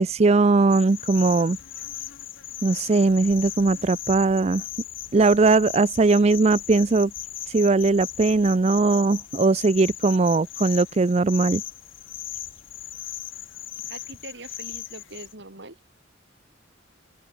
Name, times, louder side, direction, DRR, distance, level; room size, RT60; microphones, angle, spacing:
voice 1, 0.0-1.6 2.6-4.6 5.1-7.1 7.5-11.6, right 3 dB, 35° right, 0.4 m, -20 dB
sound 1, 0.7-15.3, left 12 dB, 85° left, 2.5 m, -37 dB
voice 2, 13.9-15.8, right 2 dB, 60° right, 4.5 m, -42 dB
head